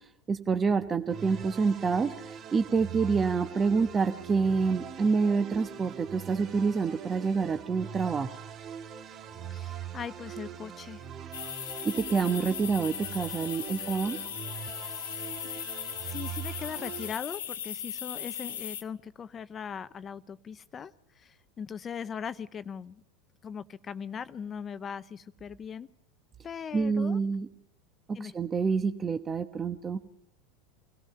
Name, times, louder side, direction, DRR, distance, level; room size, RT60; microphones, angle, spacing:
voice 1, 0.3-8.3 12.1-14.2 26.7-27.5 28.2-30.0, right 5 dB, 25° right, 7 dB, 1.2 m, -27 dB
sound 1, 1.1-17.1, right 8 dB, 40° right, 2.1 m, -42 dB
voice 2, 9.5-11.1 15.5-15.7 16.0-23.0 23.4-25.9 26.4-27.2 28.1-28.3, left 7 dB, 30° left, 14 dB, 0.8 m, -40 dB
sound 2, 11.3-18.8, left 10 dB, 75° left, 1.5 m, -38 dB
27.5 x 17.0 x 5.7 m, 0.75 s
hypercardioid pair, 85°, 0 cm